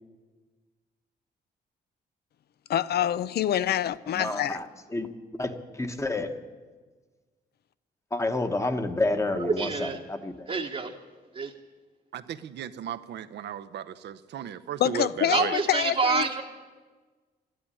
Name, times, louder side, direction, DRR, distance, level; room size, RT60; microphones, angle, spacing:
voice 1, 2.7-4.6 14.8-16.3, left 11 dB, 65° left, 0.5 m, -26 dB
voice 2, 4.1-4.6 4.9-5.1 5.4-5.5 5.8-6.3 8.1-10.5, left 2 dB, 15° left, 1.2 m, -29 dB
voice 3, 9.3-10.0 10.5-10.9 11.3-11.5 15.3-16.4, right 4 dB, 35° right, 1.1 m, -27 dB
voice 4, 12.1-15.5, right 9 dB, 75° right, 0.8 m, -36 dB
13.0 x 11.5 x 9.9 m
cardioid pair, 110°, 18 cm